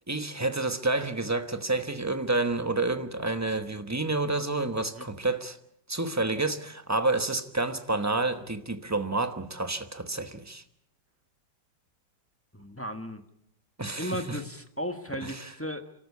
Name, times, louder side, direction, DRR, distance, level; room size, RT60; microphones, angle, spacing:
voice 1, 0.1-5.6 5.9-10.6 13.8-14.4 15.2-15.5, right 2 dB, 10° right, 0.8 m, -29 dB
voice 2, 12.5-13.2 14.0-15.9, equal, 10° left, 1.2 m, -35 dB
30.0 x 13.5 x 8.4 m
omnidirectional pair, 2.1 m